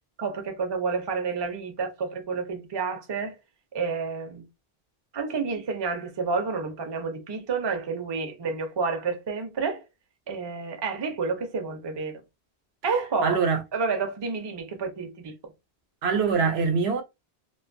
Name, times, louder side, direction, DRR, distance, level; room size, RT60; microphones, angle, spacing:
voice 1, 0.2-3.3 3.7-4.4 5.1-9.8 10.3-12.2 12.8-13.4 13.7-15.3, right 4 dB, 35° right, 0.5 m, -29 dB
voice 2, 13.2-13.6 16.0-17.0, right 5 dB, 85° right, 0.9 m, -23 dB
2.5 x 2.3 x 2.5 m
omnidirectional pair, 1.0 m